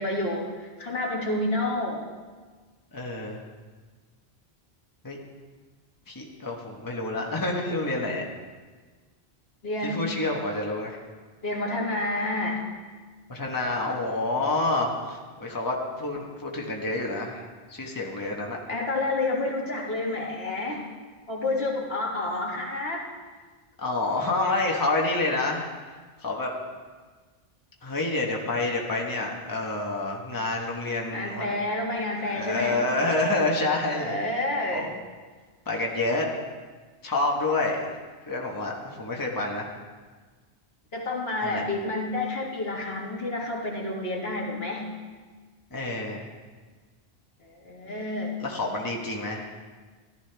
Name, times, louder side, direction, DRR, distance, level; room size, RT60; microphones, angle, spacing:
voice 1, 0.0-2.1 9.6-10.1 11.4-12.6 18.7-20.9 21.3-23.1 31.1-32.8 34.0-34.9 40.9-44.9 47.4-48.5, left 2 dB, 70° left, -1 dB, 2.0 m, -29 dB
voice 2, 2.9-3.4 5.0-5.2 6.1-8.3 9.8-11.0 13.3-18.6 23.8-25.7 26.2-26.5 27.8-31.5 32.2-34.1 34.7-34.9 35.7-36.3 37.0-37.8 38.3-39.7 41.4-41.6 45.7-46.3 48.4-49.5, left 2 dB, 20° left, -1 dB, 1.2 m, -28 dB
15.0 x 12.5 x 3.4 m, 1.4 s
omnidirectional pair, 1.1 m